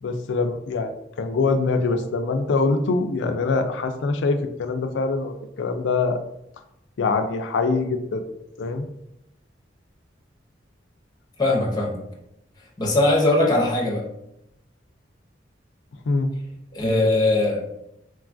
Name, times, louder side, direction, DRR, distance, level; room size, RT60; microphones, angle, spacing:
voice 1, 0.0-6.2 7.0-8.2 8.6-8.8 16.1-16.3, left 3 dB, 75° left, 7 dB, 0.3 m, -24 dB
voice 2, 11.4-12.0 12.8-14.1 16.7-17.6, left 2 dB, 20° left, -3 dB, 0.6 m, -20 dB
3.2 x 2.2 x 2.4 m, 0.83 s
head